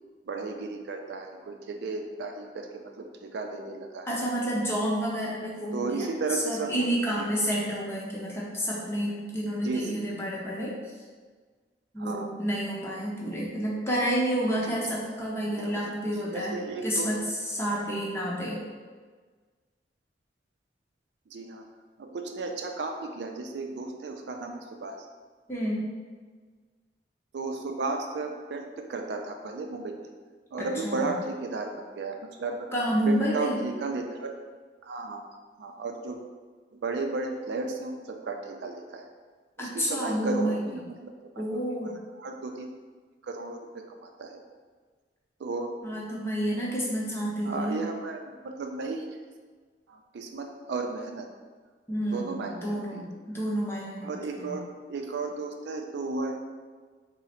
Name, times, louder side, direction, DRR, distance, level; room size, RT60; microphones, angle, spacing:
voice 1, 0.3-4.1 5.7-6.9 9.6-10.0 12.0-12.3 14.6-14.8 15.6-15.7 16.2-17.1 21.3-21.6 22.0-25.0 27.3-30.0 30.5-32.7 33.1-34.3 34.8-35.2 35.6-36.2 36.8-39.1 39.6-41.1 41.8-41.9 42.2-42.7 43.2-44.4 45.4-45.8 47.4-49.1 49.9-51.3 52.1-53.0 54.0-54.6 54.9-56.4, right 3 dB, 75° right, 4 dB, 0.4 m, -34 dB
voice 2, 4.1-11.0 11.9-16.6 16.8-18.6 25.5-25.9 30.6-31.1 32.7-33.6 39.6-40.8 41.4-42.0 45.8-47.8 51.9-54.1 54.4-54.6, equal, 15° left, -5 dB, 0.7 m, -30 dB
3.7 x 2.0 x 4.2 m, 1.5 s
head